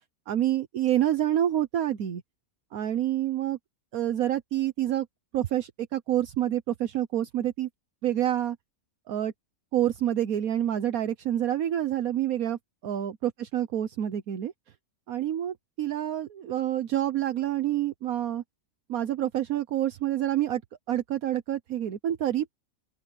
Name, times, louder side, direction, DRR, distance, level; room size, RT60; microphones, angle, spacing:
voice 1, 0.3-2.2 2.7-3.6 3.9-5.1 5.3-7.7 8.0-8.6 9.1-9.3 9.7-14.5 15.1-18.4 18.9-20.6 20.9-22.6, right 12 dB, 70° right, 1.3 m, -27 dB
open air
omnidirectional pair, 1.6 m